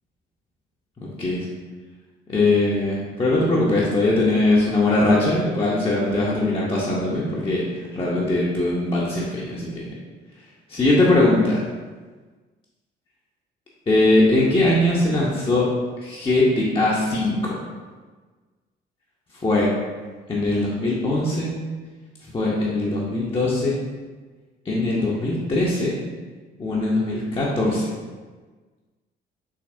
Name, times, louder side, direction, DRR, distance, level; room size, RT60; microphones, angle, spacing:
voice 1, 2.3-7.7 7.9-9.9 10.7-11.6 13.9-15.7 16.0-17.5 19.4-19.7 20.3-21.5 22.3-23.8 24.7-25.9 26.6-27.9, left 2 dB, 15° left, -5 dB, 0.7 m, -21 dB
4.9 x 3.3 x 2.6 m, 1.4 s
figure-of-eight pair, 45°, 30 cm